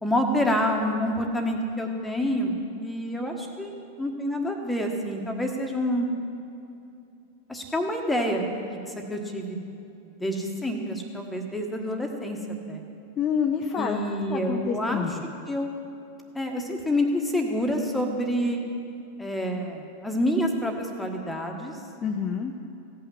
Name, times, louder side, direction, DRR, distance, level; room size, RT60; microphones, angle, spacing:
voice 1, 0.0-2.5 2.8-3.7 4.0-6.1 7.5-9.6 10.2-12.4 12.7-12.8 13.8-15.2 15.5-15.8 16.3-18.6 19.2-21.8, equal, 5° left, 2 dB, 1.4 m, -27 dB
voice 2, 13.2-14.0 14.3-15.1 22.0-22.5, left 6 dB, 25° left, 3 dB, 0.6 m, -27 dB
16.0 x 5.7 x 7.6 m, 2.7 s
figure-of-eight pair, 90°, 0 cm